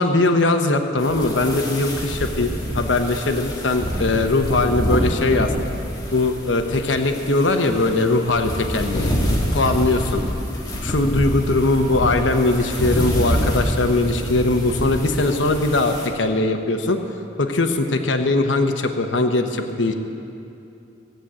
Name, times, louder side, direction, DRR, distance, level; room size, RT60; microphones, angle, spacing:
voice 1, 0.0-5.5 6.1-9.1 9.5-10.2 10.8-17.0 17.4-19.9, left 2 dB, 90° left, 6 dB, 1.0 m, -20 dB
sound 1, 1.0-16.1, equal, 20° left, 1.7 m, -26 dB
17.0 x 7.9 x 8.7 m, 2.8 s
head